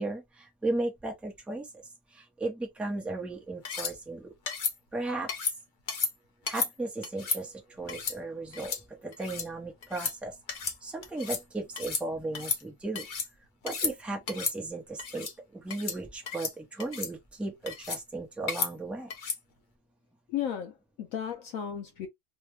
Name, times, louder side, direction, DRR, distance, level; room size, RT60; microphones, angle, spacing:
voice 1, 0.0-1.8 2.1-4.3 4.9-5.3 6.5-10.3 10.8-13.1 13.6-19.1, right 2 dB, ahead, 0.6 m, -35 dB
sound 1, 3.6-3.9 4.5-4.7 5.3-5.6 5.9-6.1 6.5-6.7 7.0-7.4 7.9-8.2 8.5-8.8 9.1-9.5 9.8-10.1 10.5-10.8 11.0-11.4 11.8-12.0 12.3-13.3 13.6-13.9 14.3-14.6 15.0-15.3 15.7-16.0 16.3-16.5 16.8-17.1 17.7-18.0 18.5-18.7 19.1-19.4, left 5 dB, 45° left, 0.7 m, -33 dB
voice 2, 20.3-22.1, left 9 dB, 70° left, 1.0 m, -34 dB
3.2 x 2.2 x 3.2 m
omnidirectional pair, 1.5 m